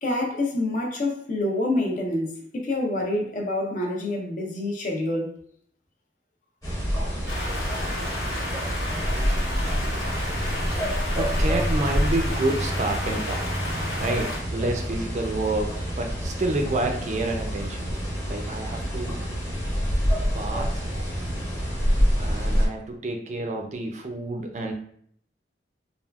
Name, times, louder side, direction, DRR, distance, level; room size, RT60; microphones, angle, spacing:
voice 1, 0.0-5.3, left 1 dB, 45° left, 0.6 m, -27 dB
sound 1, 6.6-22.7, equal, 20° left, 0.9 m, -27 dB
sound 2, 7.3-14.4, left 1 dB, 75° left, 1.0 m, -33 dB
voice 2, 11.2-13.5 14.0-17.9 18.3-19.2 20.3-20.9 22.2-24.7, right 2 dB, 40° right, 0.4 m, -29 dB
3.4 x 2.3 x 2.3 m
head